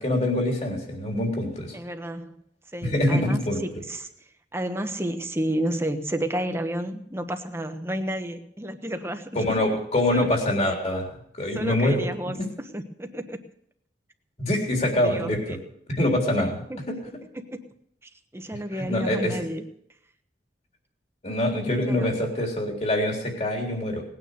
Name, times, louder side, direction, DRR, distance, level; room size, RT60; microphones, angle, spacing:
voice 1, 0.0-1.8 2.8-3.6 9.4-11.1 11.4-12.1 12.4-12.5 14.4-15.6 15.9-16.6 16.9-17.0 18.8-19.4 21.2-24.0, left 1 dB, 40° left, 1 dB, 3.7 m, -24 dB
voice 2, 1.7-2.4 2.7-4.1 4.5-9.5 10.1-10.3 11.5-12.4 12.7-13.4 14.9-15.6 16.4-16.8 18.0-19.6 21.8-22.1, right 1 dB, 15° right, 6 dB, 1.2 m, -31 dB
19.0 x 9.5 x 6.6 m, 0.71 s
head